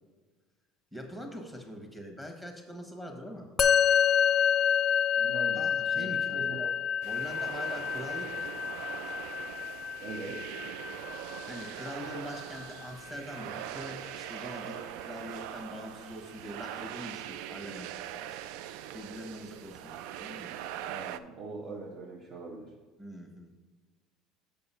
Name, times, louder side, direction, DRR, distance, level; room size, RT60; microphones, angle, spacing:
voice 1, 0.9-3.5 5.5-6.7 7.0-8.5 9.0-9.2 11.1-11.2 11.4-18.4 18.9-20.5 23.0-23.6, equal, 5° right, 3 dB, 1.3 m, -43 dB
Musical instrument, 3.6-13.1, left 8 dB, 35° left, 0.4 m, -29 dB
voice 2, 5.2-5.7 5.9-6.7 10.0-10.4 20.9-22.7, right 3 dB, 50° right, -3 dB, 1.2 m, -41 dB
sound 1, 7.0-21.2, right 11 dB, 75° right, 0.3 m, -42 dB
6.7 x 5.4 x 5.6 m, 1.3 s
supercardioid pair, 115°, 0 cm